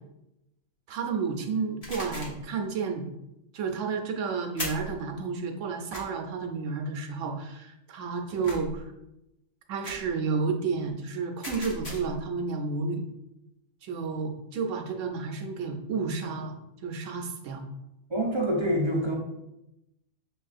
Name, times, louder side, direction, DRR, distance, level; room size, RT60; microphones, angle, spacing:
voice 1, 0.9-3.1 3.5-8.9 9.7-13.1 13.8-16.6 16.8-17.6, right 4 dB, 80° right, 4 dB, 1.0 m, -31 dB
sound 1, 1.8-2.4 4.6-5.0 5.9-6.0 8.4-8.8 9.8-10.1 11.4-12.2, left 1 dB, 30° left, 1.1 m, -38 dB
voice 2, 18.1-19.2, equal, 40° right, -2 dB, 0.4 m, -26 dB
6.7 x 2.4 x 2.5 m, 0.89 s
omnidirectional pair, 1.3 m